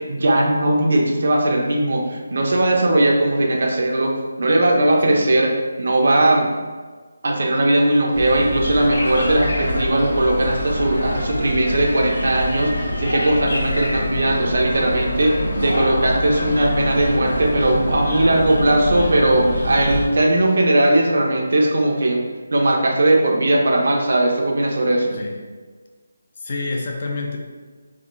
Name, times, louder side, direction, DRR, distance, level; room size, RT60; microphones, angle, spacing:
voice 1, 0.0-4.1 4.4-6.5 7.2-22.2 22.5-25.2, right 1 dB, 60° right, 0 dB, 0.5 m, -18 dB
sound 1, 8.1-20.1, left 1 dB, 70° left, 0.8 m, -25 dB
voice 2, 15.4-15.8 25.1-25.4 26.4-27.4, left 2 dB, 40° left, 1 dB, 0.4 m, -28 dB
3.5 x 2.3 x 2.5 m, 1.4 s
figure-of-eight pair, 170°, 0 cm